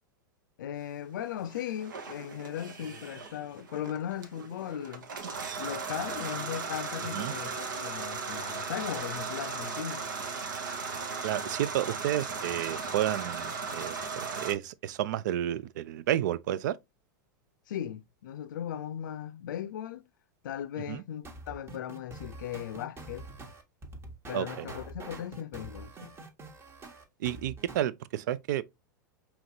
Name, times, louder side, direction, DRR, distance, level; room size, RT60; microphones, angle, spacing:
voice 1, 0.6-5.1 5.6-10.1 17.7-20.0 20.4-23.3 24.3-26.2, left 10 dB, 75° left, 0.5 m, -37 dB
sound 1, 1.5-14.5, right 5 dB, 85° right, 1.0 m, -37 dB
voice 2, 11.2-16.8 20.9-21.0 24.3-24.7 27.2-28.6, right 12 dB, 70° right, 0.4 m, -31 dB
sound 2, 21.2-27.9, right 2 dB, 25° right, 1.0 m, -45 dB
4.9 x 3.0 x 2.7 m
hypercardioid pair, 110°, 10 cm